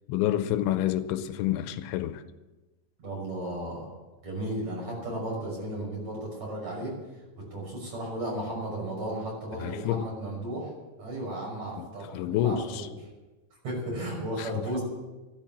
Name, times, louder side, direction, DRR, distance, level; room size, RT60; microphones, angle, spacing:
voice 1, 0.1-2.2 9.6-10.1 11.8-11.9 12.1-12.9 14.4-14.5, left 12 dB, 85° left, 3.0 m, -28 dB
voice 2, 3.0-3.9 4.2-6.9 7.5-10.7 11.0-12.9 13.6-14.8, right 1 dB, 35° right, 6.9 m, -34 dB
14.5 x 13.0 x 7.4 m
omnidirectional pair, 5.4 m